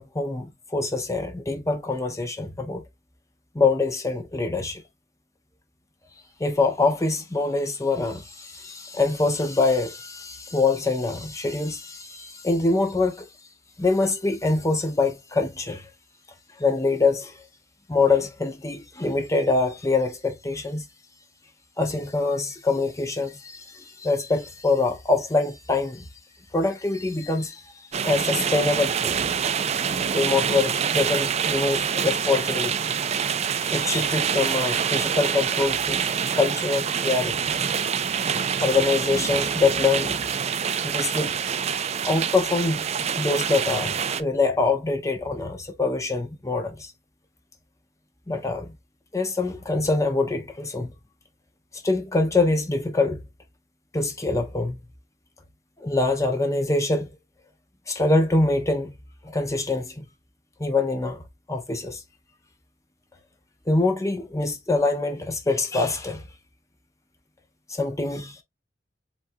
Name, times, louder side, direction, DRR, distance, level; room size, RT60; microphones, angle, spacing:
voice 1, 0.0-2.8 3.5-4.8 6.4-13.3 13.8-15.9 16.6-17.4 17.9-20.9 21.8-26.1 26.5-27.7 28.0-29.3 30.1-32.9 33.2-36.1 36.3-37.5 38.6-40.2 40.8-41.3 42.0-42.9 43.2-46.9 48.3-48.7 49.1-50.9 51.7-53.2 53.9-54.8 55.8-57.1 57.9-58.9 59.2-60.0 60.6-61.2 61.5-62.0 63.7-66.2 67.7-68.4, left 3 dB, 20° left, 0.7 m, -24 dB
sound 1, 27.9-44.2, right 7 dB, 40° right, 0.4 m, -26 dB
7.1 x 2.4 x 2.6 m
head